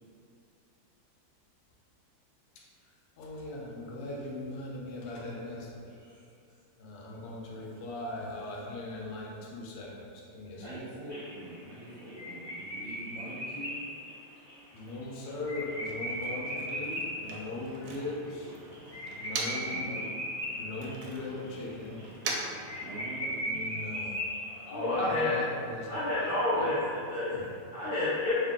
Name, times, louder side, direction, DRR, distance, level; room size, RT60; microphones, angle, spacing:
voice 1, 3.2-6.0 6.8-10.8 14.7-18.6 19.2-19.9 20.5-22.0 23.4-24.2 24.5-26.0 26.5-26.7 27.3-27.4, left 2 dB, 90° left, -3 dB, 1.6 m, -39 dB
voice 2, 10.5-13.7 17.3-17.4 18.1-18.4 19.7-20.2 22.7-23.6 24.0-24.1 25.2-25.3 25.9-26.1 26.6-26.7 27.0-27.2 27.8-28.0, right 1 dB, 65° right, -10 dB, 0.9 m, -45 dB
sound 1, 11.1-17.3 17.6-17.7 18.0-18.1 18.4-21.0 21.4-21.7 22.0-22.1 22.4-22.5 22.7-24.8, equal, 25° left, 0.8 m, -37 dB
Motor vehicle (road), 15.4-19.8 20.1-23.4, right 3 dB, 90° right, 1.5 m, -42 dB
voice 3, 24.7-25.4 25.9-28.3, left 2 dB, 70° left, -9 dB, 0.9 m, -29 dB
3.9 x 2.4 x 3.6 m, 2.5 s
omnidirectional pair, 2.4 m